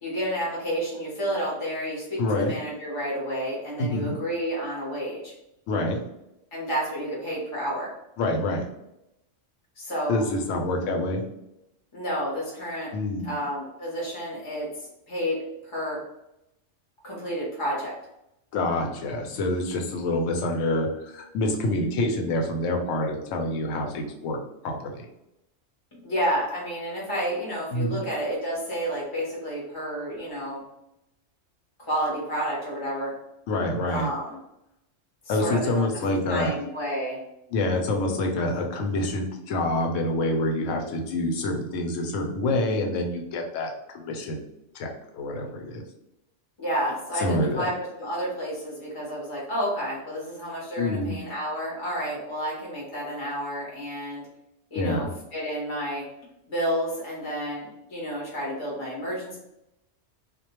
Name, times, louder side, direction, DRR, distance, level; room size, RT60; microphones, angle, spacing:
voice 1, 0.0-5.3 6.5-7.9 9.8-10.2 11.9-12.9 13.2-15.4 15.6-16.0 17.0-17.9 25.9-30.6 31.8-33.1 33.9-34.4 35.2-35.9 36.3-37.2 46.6-54.2 54.7-56.0 56.5-59.4, equal, 30° left, -5 dB, 0.6 m, -30 dB
voice 2, 2.2-2.5 3.8-4.1 5.7-6.0 8.2-8.6 10.1-11.2 12.9-13.3 18.5-25.1 27.7-28.0 33.5-34.1 35.3-36.5 37.5-44.4 44.7-45.8 47.2-47.7 50.8-51.2 54.7-55.1, left 1 dB, 80° left, 2 dB, 0.9 m, -27 dB
2.3 x 2.1 x 2.9 m, 0.85 s
omnidirectional pair, 1.3 m